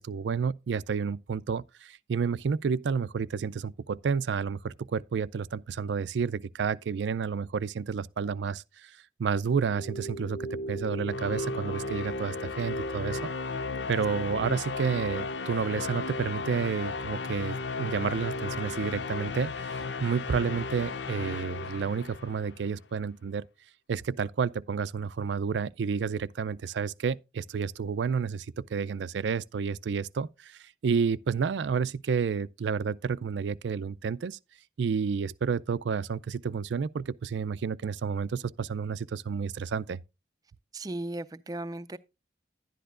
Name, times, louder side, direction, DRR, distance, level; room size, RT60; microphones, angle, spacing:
voice 1, 0.0-8.9 9.2-13.2 13.9-23.5 23.9-34.4 34.8-40.0, right 6 dB, 85° right, 0.4 m, -30 dB
sound 1, 9.6-22.7, left 3 dB, 85° left, 0.6 m, -35 dB
voice 2, 40.7-42.0, right 1 dB, 20° right, 0.4 m, -36 dB
11.0 x 10.0 x 2.5 m
head